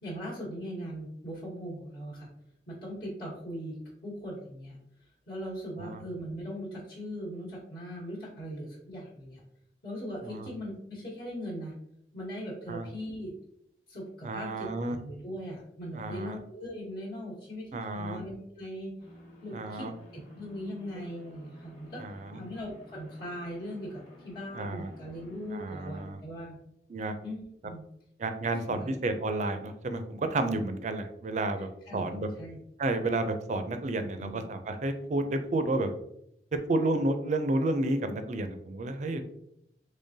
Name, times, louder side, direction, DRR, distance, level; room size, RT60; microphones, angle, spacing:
voice 1, 0.0-2.3 2.7-3.8 4.0-4.8 5.3-9.4 9.8-11.7 12.1-13.3 13.9-18.9 19.4-19.9 20.1-26.6 27.2-27.8 28.5-28.9 31.9-32.1 32.4-32.6 34.2-34.4, equal, 60° left, -7 dB, 1.2 m, -40 dB
voice 2, 14.2-15.0 15.9-16.4 17.7-18.2 19.5-19.9 22.0-22.4 24.5-24.9 25.5-26.2 26.9-27.1 28.2-32.3 32.8-35.9 36.5-39.3, right 2 dB, 40° right, 8 dB, 0.4 m, -31 dB
sound 1, 19.0-26.1, left 1 dB, 40° left, 1.1 m, -52 dB
3.7 x 3.3 x 2.7 m, 0.76 s
head